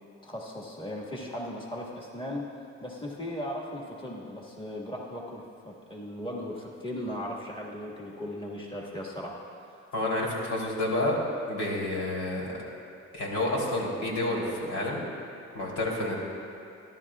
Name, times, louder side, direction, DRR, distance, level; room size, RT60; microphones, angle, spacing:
voice 1, 0.2-2.4 2.8-9.8, left 1 dB, 15° left, -3 dB, 1.8 m, -37 dB
voice 2, 9.9-11.2 11.5-12.6 13.1-15.0 15.5-16.2, left 1 dB, 80° left, -4 dB, 3.5 m, -29 dB
29.0 x 11.5 x 2.4 m, 2.6 s
cardioid pair, 90°, 30 cm